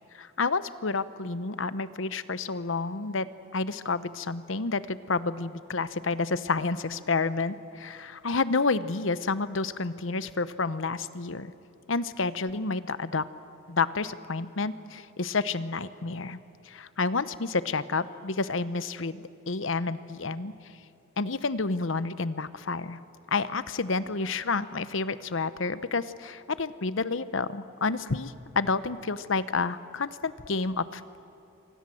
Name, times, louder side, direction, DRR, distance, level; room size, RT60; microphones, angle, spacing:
voice 1, 0.1-11.5 11.9-13.2 13.7-16.4 16.7-20.5 21.2-23.0 23.3-31.2, left 4 dB, 70° left, 14 dB, 1.0 m, -30 dB
27.5 x 25.0 x 7.8 m, 2.8 s
head